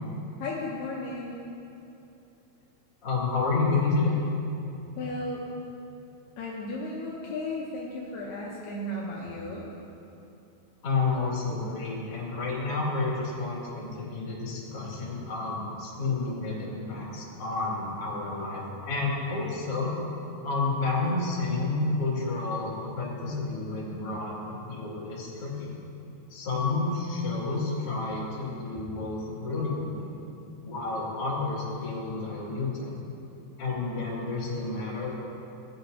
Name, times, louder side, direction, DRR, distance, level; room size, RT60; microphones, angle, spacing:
voice 1, 0.4-1.4 5.0-5.4 6.4-9.7, left 2 dB, 75° left, -4 dB, 2.7 m, -35 dB
voice 2, 3.0-4.2 10.8-20.0 20.4-25.7 26.3-30.1 30.6-33.0 33.6-35.1, left 3 dB, 40° left, -6 dB, 2.9 m, -30 dB
18.5 x 8.6 x 2.8 m, 2.8 s
omnidirectional pair, 5.0 m